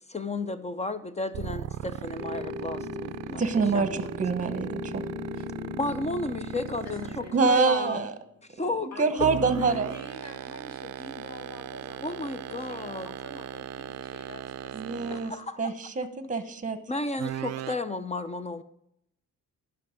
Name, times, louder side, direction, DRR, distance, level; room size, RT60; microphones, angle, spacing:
voice 1, 0.0-3.4 3.7-4.0 5.8-8.1 8.5-8.9 9.2-9.3 12.0-13.1 15.1-15.6 16.9-18.6, left 2 dB, 20° left, 12 dB, 0.5 m, -33 dB
sound 1, 1.3-7.4 9.2-15.5 17.2-17.8, right 11 dB, 55° right, 0.4 m, -37 dB
sound 2, 2.2-8.3, left 4 dB, 5° left, 1.2 m, -39 dB
voice 2, 3.4-5.0 7.3-8.1 8.6-9.9 14.7-15.3 15.6-16.8, right 4 dB, 25° right, 10 dB, 1.0 m, -26 dB
voice 3, 6.8-7.6 8.9-15.4, left 2 dB, 55° left, 6 dB, 1.8 m, -47 dB
11.0 x 5.8 x 5.0 m, 0.77 s
cardioid pair, 105°, 31 cm